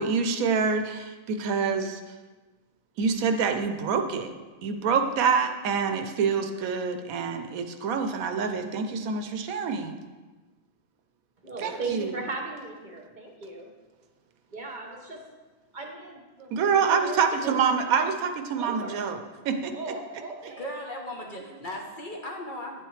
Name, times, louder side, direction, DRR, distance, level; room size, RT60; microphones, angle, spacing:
voice 1, 0.0-2.0 3.0-4.3 4.6-10.0 11.6-12.1 16.5-19.2 19.4-19.7, right 5 dB, 80° right, 7 dB, 1.1 m, -26 dB
voice 2, 11.4-13.7 14.5-15.2 15.7-16.5 16.8-18.1 18.6-19.0 19.7-20.7, right 3 dB, 40° right, 2 dB, 1.0 m, -38 dB
voice 3, 20.6-22.8, left 1 dB, 40° left, 0 dB, 0.9 m, -37 dB
9.0 x 7.7 x 3.2 m, 1.2 s
omnidirectional pair, 1.5 m